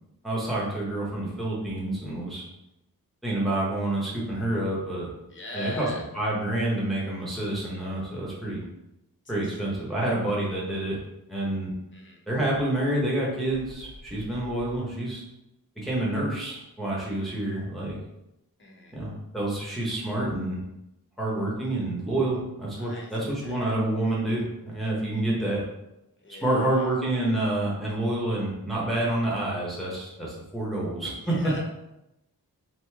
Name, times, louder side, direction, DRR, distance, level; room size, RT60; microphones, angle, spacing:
voice 1, 0.2-2.4 3.2-5.1 5.5-5.9 6.1-8.6 9.3-11.0 11.3-11.7 12.3-15.2 15.8-18.0 18.9-20.6 21.2-25.6 26.4-31.3, right 1 dB, ahead, -6 dB, 1.0 m, -28 dB
voice 2, 5.3-6.1 9.4-9.6 11.9-12.2 18.6-18.9 22.7-23.6 26.2-26.9 31.1-31.6, left 2 dB, 30° left, -1 dB, 0.8 m, -40 dB
sound 1, 13.5-14.8, left 1 dB, 35° right, 1.0 m, -47 dB
2.9 x 2.7 x 3.4 m, 0.90 s
wide cardioid pair, 70°, 37 cm